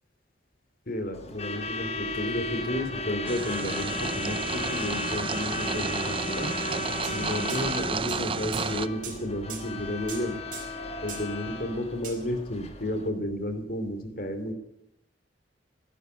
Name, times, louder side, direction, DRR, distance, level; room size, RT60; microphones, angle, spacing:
voice 1, 0.9-6.5 7.1-10.4 11.0-14.5, left 1 dB, 50° left, 8 dB, 2.9 m, -32 dB
Truck / Alarm, 1.1-13.1, left 2 dB, 35° left, 2.1 m, -35 dB
sound 1, 3.3-8.9, right 5 dB, 30° right, 0.6 m, -32 dB
sound 2, 7.0-7.2 7.5-7.6 8.1-8.2 8.5-8.7 9.0-9.2 9.5-9.6 10.1-10.2 10.5-10.7 11.1-11.3 12.0-12.2, right 7 dB, 50° right, 4.8 m, -39 dB
16.5 x 11.0 x 8.1 m, 0.79 s
head